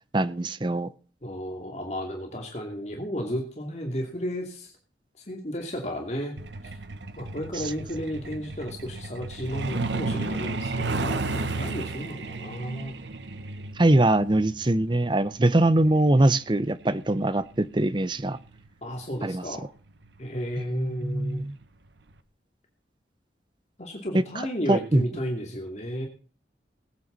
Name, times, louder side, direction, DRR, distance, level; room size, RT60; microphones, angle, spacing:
voice 1, 0.1-0.9 13.8-18.4 19.2-19.4 20.6-21.5 24.7-25.0, right 1 dB, 25° right, 15 dB, 0.7 m, -22 dB
voice 2, 1.2-4.7 5.2-6.4 7.2-13.0 18.8-19.6 20.2-21.4 23.8-26.1, equal, 40° left, 1 dB, 2.8 m, -33 dB
Truck, 6.4-18.7 19.9-20.1 20.5-20.6 21.0-21.3 21.6-21.7 22.2-22.3, right 3 dB, 85° right, 1.2 m, -33 dB
20.0 x 9.2 x 4.1 m, 0.39 s
head